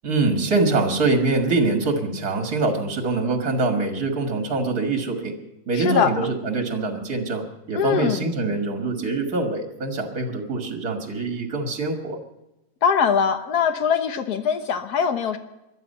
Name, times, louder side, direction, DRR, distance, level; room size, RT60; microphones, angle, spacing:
voice 1, 0.0-5.3 5.7-12.2, right 3 dB, 70° right, 3 dB, 2.4 m, -24 dB
voice 2, 5.7-6.1 7.7-8.3 12.8-15.4, left 7 dB, 80° left, 8 dB, 1.6 m, -22 dB
21.0 x 12.5 x 5.6 m, 0.94 s
omnidirectional pair, 1.6 m